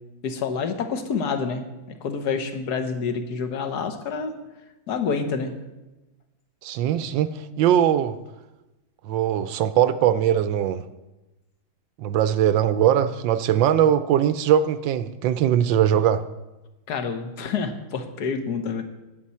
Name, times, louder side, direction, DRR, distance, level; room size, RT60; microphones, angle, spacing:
voice 1, 0.2-4.3 4.9-5.5 16.9-18.8, left 5 dB, 55° left, 7 dB, 1.6 m, -28 dB
voice 2, 6.6-7.3 7.6-8.2 9.1-10.8 12.0-16.2, right 10 dB, 75° right, 12 dB, 1.2 m, -20 dB
19.0 x 8.3 x 4.3 m, 1.0 s
omnidirectional pair, 2.2 m